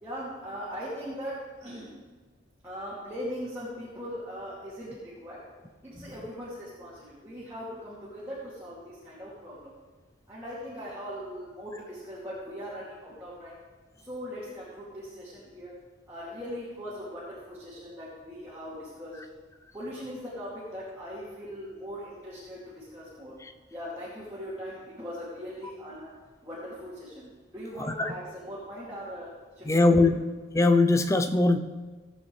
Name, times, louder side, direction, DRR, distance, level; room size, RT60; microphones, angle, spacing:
voice 1, 0.0-1.9 2.6-5.4 5.8-9.8 10.3-13.6 14.0-15.7 16.1-19.3 19.7-23.3 23.7-26.1 26.4-29.3 29.6-29.9, equal, 15° right, -10 dB, 2.5 m, -40 dB
voice 2, 27.8-28.1 29.6-30.2 30.5-31.6, left 2 dB, 15° left, 7 dB, 0.5 m, -22 dB
17.0 x 8.2 x 3.3 m, 1.4 s
head